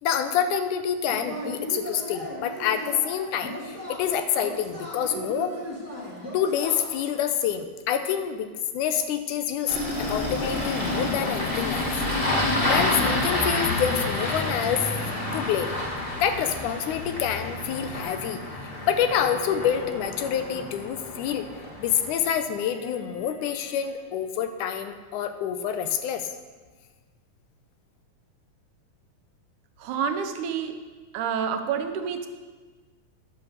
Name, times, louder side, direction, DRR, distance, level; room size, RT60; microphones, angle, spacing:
voice 1, 0.0-5.6 6.3-12.0 12.7-14.9 15.3-15.7 16.2-18.4 18.9-21.5 21.8-26.3, left 8 dB, 85° left, 8 dB, 2.2 m, -27 dB
Yell / Cheering, 1.1-7.2, equal, 10° right, 1.2 m, -37 dB
Engine starting, 9.7-22.1, left 2 dB, 25° left, 1.5 m, -29 dB
Bowed string instrument, 18.8-24.3, equal, 50° left, 3.0 m, -47 dB
voice 2, 29.8-30.8 31.1-32.3, right 7 dB, 85° right, 6 dB, 2.3 m, -28 dB
10.5 x 6.1 x 6.5 m, 1.4 s
omnidirectional pair, 3.5 m